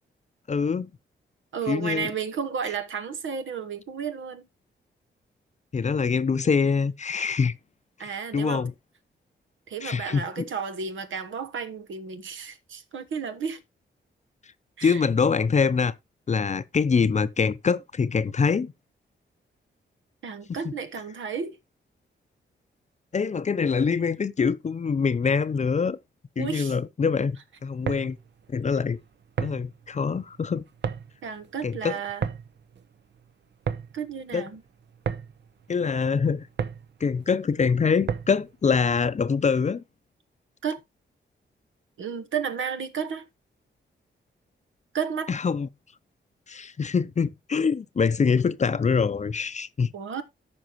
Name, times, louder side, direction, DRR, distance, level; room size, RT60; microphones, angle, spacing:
voice 1, 0.5-0.9 1.7-2.1 5.7-7.6 8.3-8.7 9.8-10.2 14.8-15.9 16.3-18.7 20.6-20.7 23.1-26.0 26.4-27.4 27.6-28.2 28.5-29.0 29.4-30.6 31.6-32.0 34.3-34.5 35.7-36.5 37.0-39.8 45.3-45.7 46.5-49.9, left 5 dB, 35° left, 0.6 m, -24 dB
voice 2, 1.5-4.4 8.0-8.6 9.7-13.6 14.8-15.0 20.2-21.6 26.4-26.8 31.2-32.3 33.9-34.6 40.6-40.8 42.0-43.2 44.9-45.3 49.9-50.2, right 6 dB, 80° right, 1.3 m, -32 dB
sound 1, 27.6-38.5, right 7 dB, 65° right, 0.7 m, -35 dB
14.0 x 5.3 x 2.9 m
cardioid pair, 90°, 20 cm